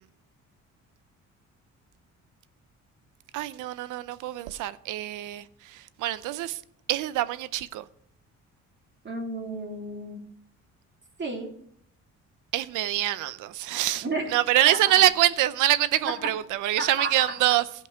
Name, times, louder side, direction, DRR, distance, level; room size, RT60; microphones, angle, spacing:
voice 1, 3.3-6.6 6.9-7.8 12.5-17.6, right 14 dB, 90° right, 0.6 m, -25 dB
voice 2, 9.0-10.2 11.2-11.5 14.0-14.3 14.6-14.9 16.0-16.3 16.8-17.1, right 2 dB, 35° right, 2.5 m, -32 dB
15.5 x 5.3 x 4.9 m
cardioid pair, 90°, 30 cm